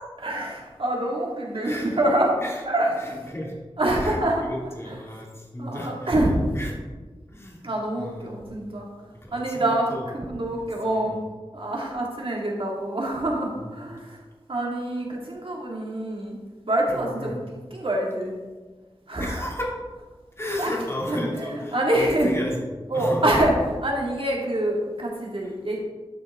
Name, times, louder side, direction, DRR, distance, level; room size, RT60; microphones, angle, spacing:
voice 1, 0.2-2.3 2.7-3.1 3.8-4.4 4.8-5.0 5.6-6.4 7.6-8.9 9.3-11.2 11.5-14.2 14.5-16.4 16.7-18.4 19.1-19.4 20.6-20.7 21.1-22.3 22.9-25.8, right 1 dB, 65° right, -2 dB, 2.2 m, -26 dB
voice 2, 1.5-2.0 2.4-2.6 3.0-3.5 3.9-6.7 7.3-8.5 9.1-10.1 10.4-10.5 10.9-11.2 13.6-13.7 16.9-17.4 19.2-19.8 20.4-23.2, left 1 dB, 25° left, -3 dB, 2.3 m, -34 dB
12.0 x 6.3 x 3.6 m, 1.3 s
wide cardioid pair, 70°, 10 cm